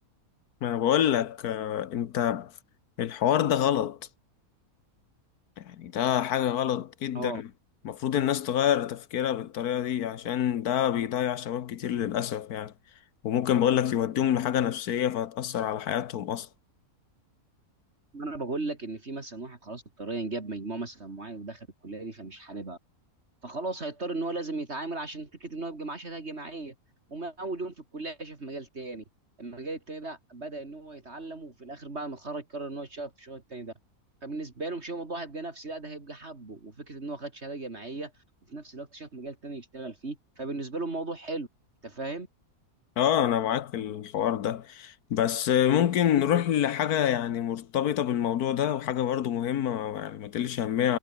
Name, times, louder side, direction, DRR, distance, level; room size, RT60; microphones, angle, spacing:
voice 1, 0.6-2.5 3.0-4.0 5.6-7.4 7.8-12.7 13.2-16.5 43.0-51.0, left 10 dB, 85° left, 1.5 m, -27 dB
voice 2, 18.1-22.8 23.4-26.7 27.1-29.0 29.4-33.7 34.2-38.1 38.5-41.5 41.8-42.3, right 2 dB, 45° right, 3.1 m, -37 dB
omnidirectional pair, 1.6 m